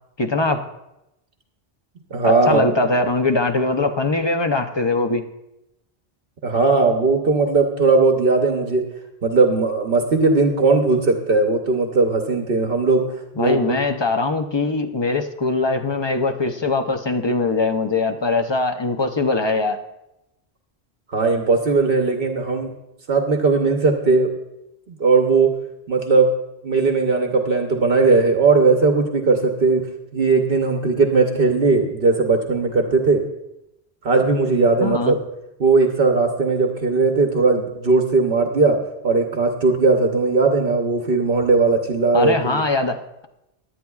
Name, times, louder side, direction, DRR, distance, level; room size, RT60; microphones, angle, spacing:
voice 1, 0.2-0.6 2.2-5.2 13.4-19.8 34.8-35.1 42.1-43.3, left 3 dB, 30° left, 6 dB, 0.5 m, -21 dB
voice 2, 2.1-2.6 6.4-8.8 9.2-13.1 13.4-13.8 21.1-22.7 23.1-24.3 24.9-25.5 25.9-26.3 26.6-29.8 30.1-33.2 34.0-35.2 35.6-38.8 39.0-42.6, right 3 dB, 65° right, 4 dB, 1.1 m, -18 dB
17.5 x 11.0 x 2.3 m, 0.89 s
omnidirectional pair, 1.1 m